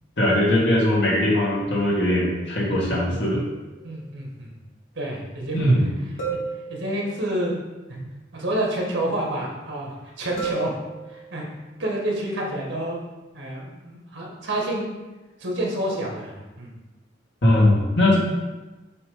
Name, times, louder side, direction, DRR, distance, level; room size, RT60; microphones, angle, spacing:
voice 1, 0.2-3.4 5.5-5.9 17.4-18.2, left 1 dB, 60° left, -4 dB, 1.8 m, -20 dB
sound 1, 3.8-3.9 6.2-7.3 10.4-11.5, right 5 dB, 80° left, 1.9 m, -32 dB
voice 2, 3.8-4.5 4.9-5.7 6.7-7.5 8.3-10.7 11.1-11.5 11.8-13.0 13.3-15.0 15.4-16.7, right 1 dB, 75° right, -2 dB, 1.7 m, -28 dB
7.0 x 3.1 x 5.1 m, 1.1 s
head